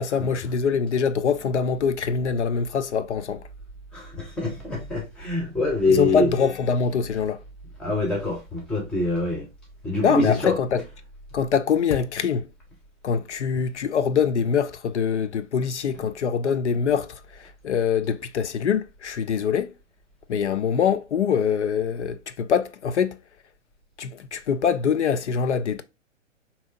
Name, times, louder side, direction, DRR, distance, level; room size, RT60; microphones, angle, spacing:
voice 1, 0.0-3.4 5.9-7.4 10.0-10.8 11.3-12.5 13.0-19.7 20.3-23.2 24.0-25.8, left 7 dB, 65° left, 0.5 m, -24 dB
voice 2, 3.9-6.3 7.8-9.5 9.8-10.6, left 2 dB, ahead, 0.5 m, -25 dB
4.3 x 2.8 x 2.6 m
figure-of-eight pair, 120°, 38 cm